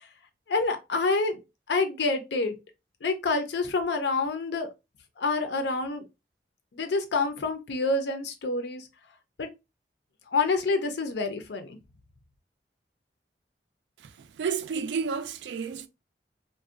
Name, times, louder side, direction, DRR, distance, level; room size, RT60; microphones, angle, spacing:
voice 1, 0.5-1.4 1.7-2.6 3.0-4.7 5.2-6.0 6.7-8.8 9.4-9.5 10.3-11.8, left 3 dB, 75° left, 0.5 m, -27 dB
voice 2, 14.0-15.9, right 6 dB, 80° right, 0.3 m, -31 dB
2.6 x 2.1 x 2.4 m
head